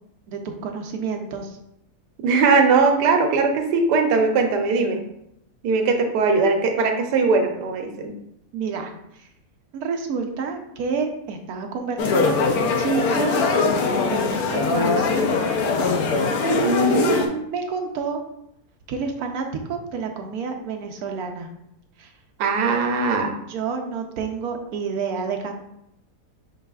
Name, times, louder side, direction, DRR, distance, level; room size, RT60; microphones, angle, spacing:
voice 1, 0.3-1.6 8.5-8.9 9.2-9.3 9.7-15.5 16.4-18.2 18.9-21.5 22.0-22.1 22.7-22.8 23.5-25.5, right 5 dB, 70° right, 4 dB, 1.1 m, -29 dB
voice 2, 2.2-5.0 5.6-8.1 16.6-17.2 22.4-23.3, right 4 dB, 90° right, 4 dB, 1.3 m, -20 dB
sound 1, 12.0-17.3, left 4 dB, 70° left, 1.1 m, -21 dB
5.4 x 4.0 x 2.3 m, 0.78 s
omnidirectional pair, 1.7 m